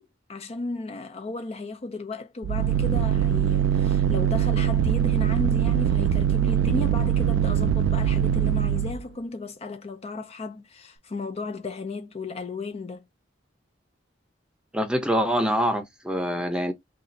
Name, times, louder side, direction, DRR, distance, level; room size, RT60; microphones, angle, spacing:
voice 1, 0.0-13.1, left 3 dB, 35° left, 0.4 m, -34 dB
sound 1, 2.4-9.0, right 9 dB, 80° right, 0.3 m, -22 dB
voice 2, 14.7-16.7, equal, 5° right, 0.7 m, -25 dB
2.6 x 2.4 x 4.0 m
head